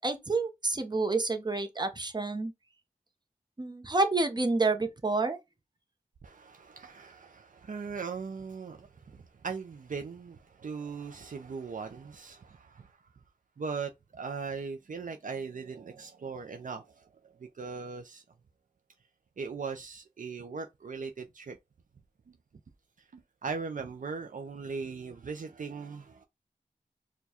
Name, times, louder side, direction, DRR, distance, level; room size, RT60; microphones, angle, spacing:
voice 1, 0.0-2.5 3.6-5.4, right 3 dB, 30° right, 0.7 m, -29 dB
voice 2, 6.2-13.0 13.6-17.1 17.4-18.2 19.4-21.6 22.3-22.4 23.1-26.2, right 5 dB, 65° right, 0.4 m, -39 dB
4.4 x 2.2 x 2.8 m
wide cardioid pair, 50°, 15 cm